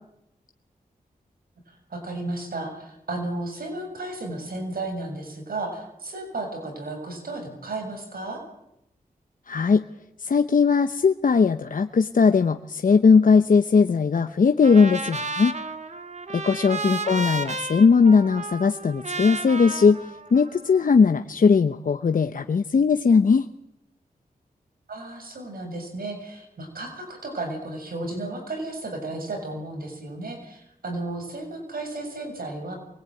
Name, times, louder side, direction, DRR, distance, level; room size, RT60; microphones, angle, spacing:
voice 1, 1.7-8.4 16.8-17.4 24.9-32.7, right 2 dB, 80° right, 4 dB, 7.4 m, -34 dB
voice 2, 9.5-9.8 10.2-15.5 16.3-20.0 20.3-23.5, left 5 dB, 65° left, 8 dB, 0.9 m, -19 dB
Trumpet, 14.6-20.8, right 2 dB, 50° right, 2.3 m, -33 dB
24.0 x 22.0 x 9.2 m, 0.85 s
wide cardioid pair, 70°, 15 cm